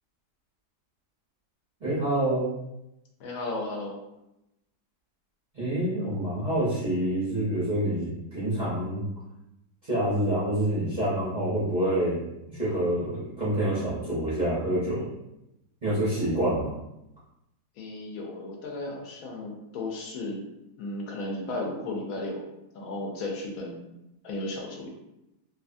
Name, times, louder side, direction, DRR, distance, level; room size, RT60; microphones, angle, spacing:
voice 1, 1.8-2.5 5.5-9.0 9.8-12.2 12.5-15.1 15.8-16.7, right 1 dB, 45° right, -10 dB, 0.5 m, -27 dB
voice 2, 3.2-4.0 16.2-16.4 17.8-20.4 20.8-22.4 22.7-23.8 24.2-24.9, left 2 dB, 70° left, 0 dB, 0.9 m, -34 dB
2.6 x 2.5 x 2.4 m, 0.88 s
omnidirectional pair, 1.8 m